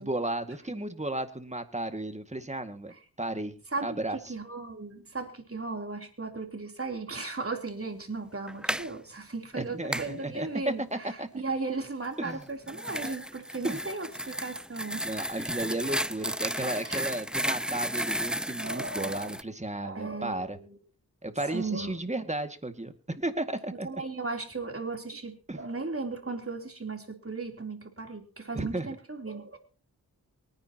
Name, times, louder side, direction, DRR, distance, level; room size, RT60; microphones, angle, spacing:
voice 1, 0.0-4.3 9.5-11.3 12.2-12.4 13.6-13.8 15.0-20.6 21.2-24.0 25.5-25.6 28.5-28.9, right 1 dB, 15° right, 8 dB, 2.1 m, -34 dB
voice 2, 4.3-15.1 16.8-17.1 18.6-19.3 19.8-20.7 21.4-22.0 23.8-29.6, right 3 dB, 35° right, 4 dB, 3.6 m, -36 dB
sound 1, 8.5-8.9 9.9-10.1 12.3-19.4, equal, ahead, 0.6 m, -33 dB
24.0 x 10.0 x 3.0 m, 0.39 s
cardioid pair, 40°, 39 cm